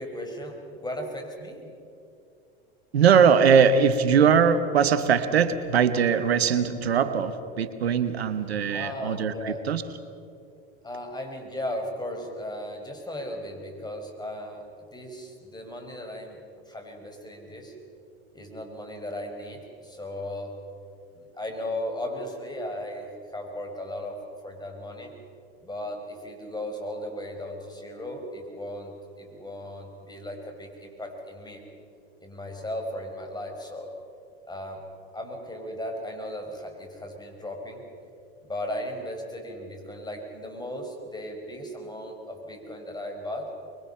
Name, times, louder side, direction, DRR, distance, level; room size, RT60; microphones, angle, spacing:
voice 1, 0.0-1.7 8.7-9.6 10.8-17.7 18.3-20.6 21.2-25.1 25.6-31.6 32.2-33.9 34.5-34.8 35.1-37.8 38.5-43.5, left 1 dB, 15° left, 3 dB, 5.3 m, -36 dB
voice 2, 2.9-9.8, right 7 dB, 90° right, 11 dB, 1.2 m, -21 dB
25.0 x 22.5 x 5.7 m, 2.5 s
hypercardioid pair, 85°, 31 cm